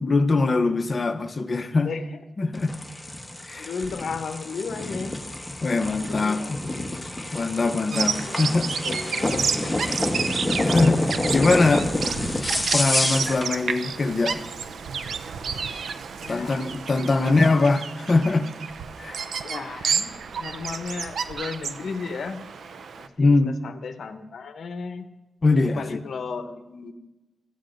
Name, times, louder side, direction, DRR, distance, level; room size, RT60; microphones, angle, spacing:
voice 1, 0.0-1.9 2.4-2.8 3.5-3.7 5.6-6.7 7.3-8.7 10.3-11.9 12.6-14.4 16.3-18.5 19.0-19.2 23.2-23.6 25.4-26.0, left 3 dB, 40° left, 7 dB, 0.7 m, -22 dB
sound 1, 2.5-13.5, left 1 dB, 10° left, 1.0 m, -28 dB
voice 2, 3.6-5.1 5.8-6.5 8.2-9.7 16.2-16.8 17.2-17.6 19.4-22.4 23.0-25.1 25.5-26.9, left 5 dB, 70° left, 7 dB, 0.7 m, -35 dB
Bird vocalization bird call bird song, 7.9-23.1, right 6 dB, 75° right, 0.5 m, -31 dB
14.5 x 9.4 x 2.5 m, 1.1 s
cardioid pair, 80°, 0 cm